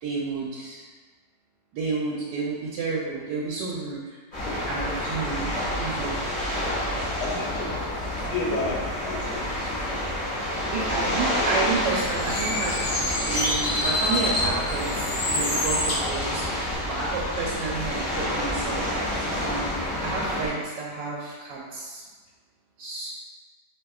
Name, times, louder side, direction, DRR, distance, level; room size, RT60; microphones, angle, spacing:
voice 1, 0.0-0.8 1.7-4.2 4.7-5.4 5.8-6.2 10.7-12.9 13.3-19.0 19.4-22.0 22.8-23.1, right 3 dB, 90° right, -5 dB, 1.2 m, -30 dB
sound 1, 4.3-20.5, left 1 dB, 30° left, 1.3 m, -29 dB
voice 2, 7.2-7.9 8.2-9.3, left 3 dB, 85° left, -2 dB, 1.3 m, -31 dB
Bird, 11.8-16.8, left 1 dB, 60° left, 0.6 m, -27 dB
3.4 x 3.1 x 2.3 m, 1.4 s
omnidirectional pair, 1.9 m